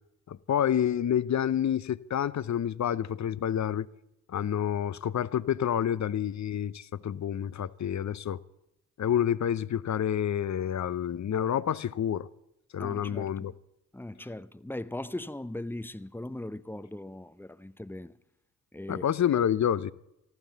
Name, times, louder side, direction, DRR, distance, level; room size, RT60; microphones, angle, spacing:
voice 1, 0.3-3.9 4.3-8.4 9.0-12.3 12.7-13.5 18.9-19.9, left 9 dB, 40° left, 0.7 m, -28 dB
voice 2, 12.8-13.5 13.9-18.1 18.7-19.0, left 1 dB, 5° left, 0.7 m, -39 dB
20.0 x 14.5 x 4.0 m
hypercardioid pair, 45°, 43 cm